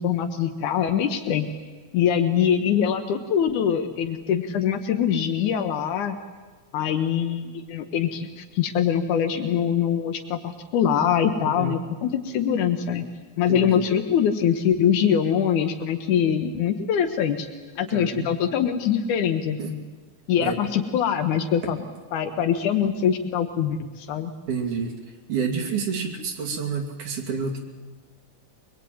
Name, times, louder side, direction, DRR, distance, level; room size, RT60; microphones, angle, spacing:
voice 1, 0.0-1.5 1.9-6.2 6.7-13.1 13.4-17.5 17.8-19.8 20.3-21.8 22.1-24.3, left 8 dB, 80° left, 6 dB, 2.6 m, -23 dB
voice 2, 11.4-11.7 13.5-13.9 17.9-18.3 19.6-19.7 20.4-20.6 24.5-24.9 25.3-27.6, right 5 dB, 75° right, 2 dB, 4.1 m, -29 dB
23.0 x 21.0 x 9.4 m, 1.4 s
omnidirectional pair, 3.5 m